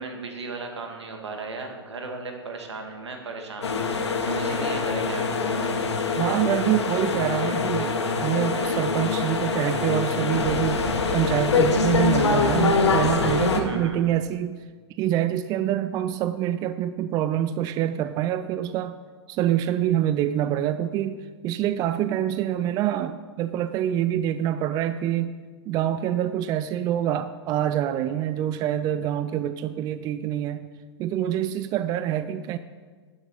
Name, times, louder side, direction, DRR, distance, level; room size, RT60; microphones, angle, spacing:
voice 1, 0.0-5.8 13.6-14.0, right 3 dB, 75° right, 3 dB, 2.0 m, -36 dB
sound 1, 3.6-13.6, left 4 dB, 75° left, 1.4 m, -24 dB
voice 2, 6.2-10.8 11.1-14.6 14.9-19.0 19.3-25.3 25.7-30.6 31.0-32.6, right 11 dB, 25° right, 12 dB, 0.4 m, -26 dB
12.0 x 7.1 x 5.4 m, 1.5 s
figure-of-eight pair, 105°, 14 cm